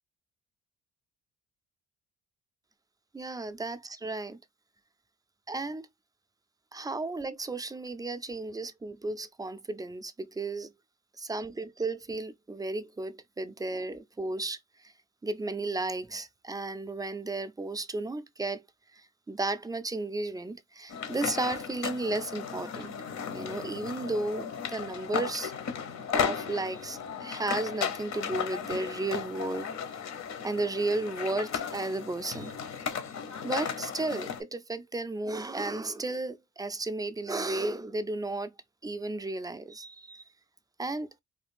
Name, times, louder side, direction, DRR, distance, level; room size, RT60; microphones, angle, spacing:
voice 1, 3.1-4.4 5.5-5.9 6.7-10.7 11.2-14.9 15.2-18.6 18.9-22.9 23.3-25.5 26.1-29.7 30.4-33.2 33.4-38.5 38.8-40.2 40.8-41.1, right 2 dB, 15° right, 0.3 m, -34 dB
sound 1, 20.9-34.4, left 7 dB, 65° left, 0.9 m, -35 dB
3.3 x 2.3 x 3.3 m
cardioid pair, 90°, 30 cm